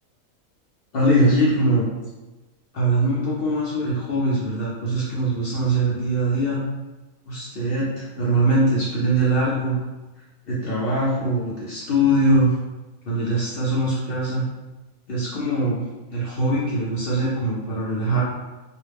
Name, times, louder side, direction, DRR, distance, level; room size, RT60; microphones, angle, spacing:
voice 1, 0.9-1.9 2.7-6.6 7.3-9.8 10.5-12.5 13.1-14.5 15.1-18.2, right 1 dB, 60° left, -7 dB, 0.6 m, -22 dB
2.4 x 2.1 x 3.3 m, 1.1 s
omnidirectional pair, 1.5 m